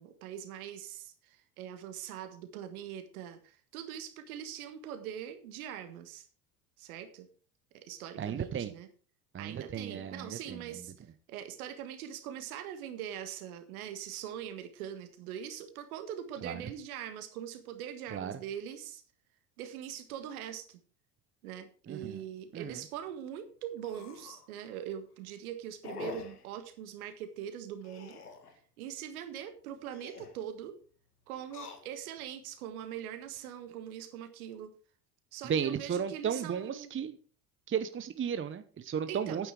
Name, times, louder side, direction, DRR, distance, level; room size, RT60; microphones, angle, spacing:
voice 1, 0.0-6.3 6.8-7.3 7.7-8.9 9.4-10.9 11.3-19.0 19.6-20.8 21.4-28.2 28.8-30.8 31.3-34.7 35.3-36.9 39.1-39.4, right 10 dB, 70° right, 10 dB, 1.8 m, -42 dB
voice 2, 8.2-8.7 9.3-10.6 16.4-16.6 18.1-18.3 21.9-22.2 22.5-22.8 35.4-37.1 37.7-39.5, right 8 dB, 25° right, 11 dB, 1.0 m, -34 dB
sound 1, 22.1-22.3 22.7-22.8 23.1-23.2 23.8-24.5 24.9-25.2 25.8-26.5 27.8-28.6 29.8-30.4 31.4-32.2 32.8-33.4, left 5 dB, 90° left, 1.6 m, -46 dB
9.6 x 9.3 x 4.9 m, 0.40 s
hypercardioid pair, 70°, 45 cm